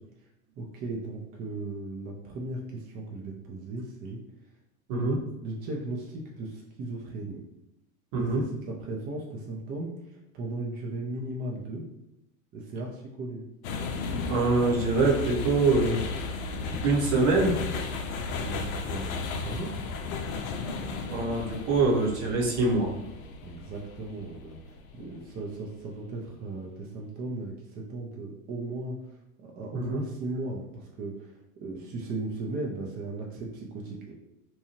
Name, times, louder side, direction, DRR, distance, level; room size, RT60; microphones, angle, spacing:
voice 1, 0.6-4.2 5.4-7.4 8.1-8.3 8.7-11.8 12.5-13.4 18.4-19.8 23.4-34.1, right 2 dB, 25° right, -1 dB, 0.4 m, -37 dB
voice 2, 4.9-5.2 8.1-8.5 14.3-16.0 16.8-17.6 21.1-22.9 29.7-30.0, right 3 dB, 50° right, -1 dB, 0.9 m, -24 dB
sound 1, 13.6-25.7, left 3 dB, 70° left, 0.5 m, -34 dB
2.8 x 2.2 x 2.9 m, 0.85 s
hypercardioid pair, 95°, 43 cm